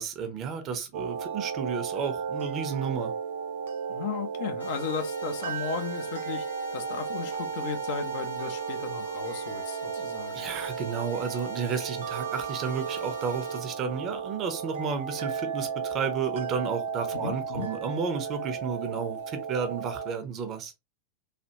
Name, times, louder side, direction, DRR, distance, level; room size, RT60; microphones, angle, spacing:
voice 1, 0.0-3.1 10.3-20.7, right 6 dB, 30° right, 0.8 m, -32 dB
sound 1, 0.9-20.1, right 6 dB, 60° right, 0.4 m, -34 dB
voice 2, 3.9-6.4 6.7-10.5 17.1-17.7, left 7 dB, 50° left, 0.6 m, -35 dB
sound 2, 4.6-13.6, right 2 dB, 85° left, 1.2 m, -41 dB
3.3 x 2.4 x 2.8 m
figure-of-eight pair, 90°, 0 cm